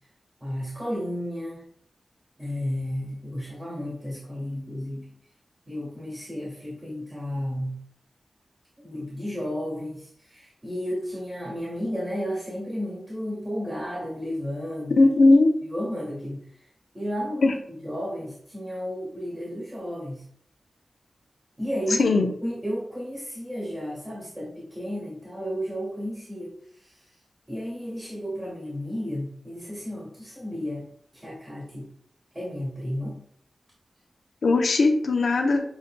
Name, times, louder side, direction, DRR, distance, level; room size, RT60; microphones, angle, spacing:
voice 1, 0.4-1.6 2.4-5.1 5.7-7.8 8.8-15.0 15.7-16.4 16.9-20.2 21.6-26.5 27.5-30.8 31.1-31.9 32.3-33.2, equal, 20° right, -6 dB, 1.6 m, -33 dB
voice 2, 15.0-15.5 17.4-17.5 22.0-22.3 34.4-35.6, left 3 dB, 85° left, 4 dB, 0.6 m, -18 dB
6.9 x 2.6 x 2.2 m, 0.65 s
wide cardioid pair, 100°, 0 cm